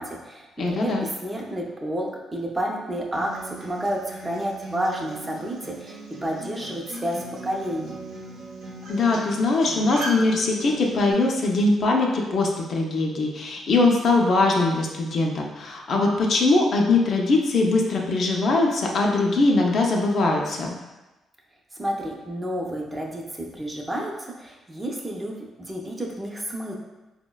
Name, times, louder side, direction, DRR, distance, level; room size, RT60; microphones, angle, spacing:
voice 1, 0.0-8.0 21.8-26.7, equal, 20° right, -1 dB, 0.5 m, -30 dB
voice 2, 0.6-1.1 8.9-20.7, left 3 dB, 55° left, 0 dB, 0.4 m, -21 dB
Acoustic guitar, 3.1-11.1, right 1 dB, 80° right, 0.7 m, -38 dB
3.7 x 2.1 x 2.2 m, 1.1 s
cardioid pair, 90°, 0 cm